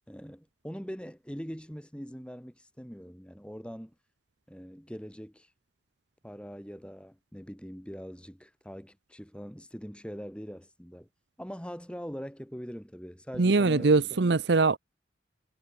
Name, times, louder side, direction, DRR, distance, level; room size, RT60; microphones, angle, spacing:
voice 1, 0.1-3.9 4.5-5.5 6.2-11.1 11.4-14.1, equal, 5° left, 4.2 m, -42 dB
voice 2, 13.4-14.8, right 3 dB, 65° right, 0.7 m, -22 dB
head